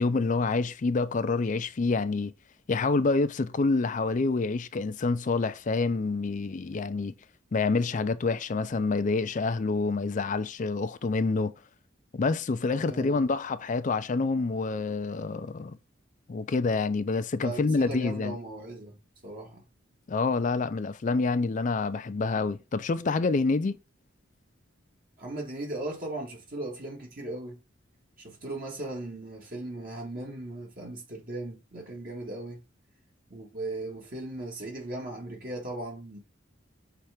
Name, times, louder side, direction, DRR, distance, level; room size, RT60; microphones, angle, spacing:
voice 1, 0.0-2.3 2.7-7.1 7.5-11.5 12.1-15.8 16.3-18.4 20.1-23.8, left 3 dB, 40° left, 0.4 m, -27 dB
voice 2, 12.8-13.3 17.3-19.0 19.2-19.6 25.2-27.6 28.2-32.6 33.3-36.2, right 2 dB, 50° right, 1.7 m, -38 dB
5.8 x 3.4 x 4.8 m
head